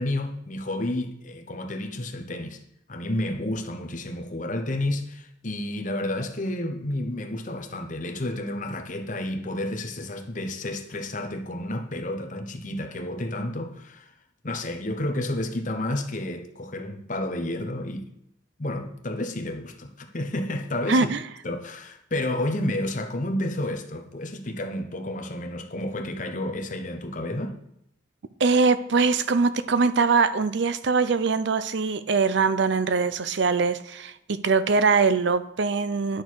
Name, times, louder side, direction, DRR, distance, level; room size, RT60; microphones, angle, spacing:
voice 1, 0.0-2.6 2.9-14.1 14.4-18.1 18.6-21.1 21.4-27.6, left 1 dB, 40° left, 0.9 m, -30 dB
voice 2, 20.9-21.2 28.4-36.2, right 4 dB, 60° right, 0.5 m, -22 dB
10.5 x 6.4 x 4.7 m
head